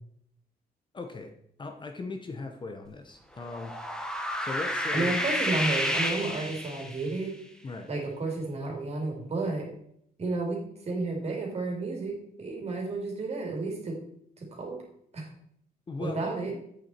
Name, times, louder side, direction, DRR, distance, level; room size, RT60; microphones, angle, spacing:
voice 1, 0.9-1.3 1.6-3.7 4.4-5.2 7.6-7.9 15.9-16.6, left 3 dB, 30° left, 6 dB, 0.8 m, -38 dB
sound 1, 3.4-7.2, equal, 5° left, 1.1 m, -30 dB
voice 2, 4.9-7.4 7.9-9.7 10.2-14.0 14.4-14.7 15.1-15.3 16.0-16.5, right 3 dB, 40° right, 0 dB, 2.9 m, -32 dB
8.3 x 6.9 x 4.4 m, 0.70 s
wide cardioid pair, 145°, 17 cm